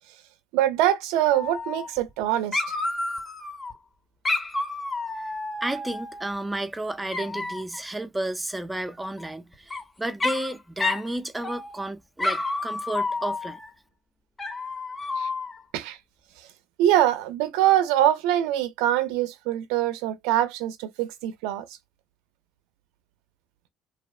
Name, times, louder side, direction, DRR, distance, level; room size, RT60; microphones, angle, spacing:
voice 1, 0.5-2.6 15.1-15.3 15.7-16.0 16.8-21.7, right 12 dB, 80° right, 0.4 m, -23 dB
Dog, 1.3-2.2 2.5-3.7 4.2-6.3 7.1-7.8 9.2-9.8 10.2-10.5 10.8-11.1 11.4-11.8 12.2-13.7 14.4-15.6, left 3 dB, 25° left, 0.7 m, -30 dB
voice 2, 5.6-13.6, right 1 dB, 10° right, 0.5 m, -32 dB
2.6 x 2.0 x 2.3 m
hypercardioid pair, 65°, 0 cm